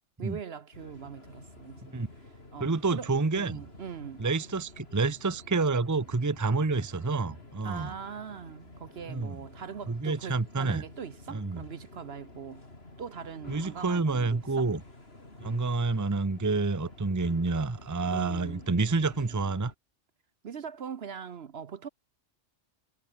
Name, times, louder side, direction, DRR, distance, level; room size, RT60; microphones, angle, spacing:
voice 1, 0.2-2.0 2.5-4.3 7.6-12.6 13.0-14.7 18.1-18.7 20.4-21.9, right 7 dB, 55° right, 1.1 m, -41 dB
sound 1, 0.7-19.7, left 2 dB, 50° left, 4.8 m, -50 dB
voice 2, 2.6-3.6 4.2-7.9 9.1-9.4 9.9-10.8 11.3-11.7 13.5-14.8 15.4-19.7, right 3 dB, 15° right, 0.8 m, -28 dB
omnidirectional pair, 1.3 m